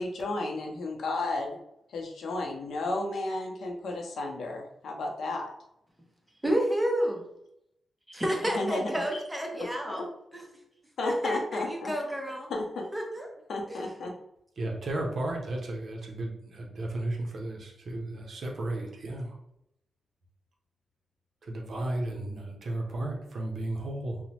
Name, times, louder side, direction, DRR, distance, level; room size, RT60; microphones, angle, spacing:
voice 1, 0.0-1.6 1.9-5.5 8.4-9.2 9.5-10.1 11.0-11.9 12.5-12.9 13.5-14.1, left 2 dB, 75° left, 1 dB, 0.6 m, -33 dB
voice 2, 6.4-7.2 8.1-10.0 10.3-10.5 11.0-12.5 12.9-13.3 13.7-13.8, equal, 10° right, 0 dB, 0.7 m, -30 dB
voice 3, 14.6-19.3 21.4-24.2, right 1 dB, 60° right, 0 dB, 0.6 m, -34 dB
2.9 x 2.1 x 2.8 m, 0.79 s
cardioid pair, 105°, 0 cm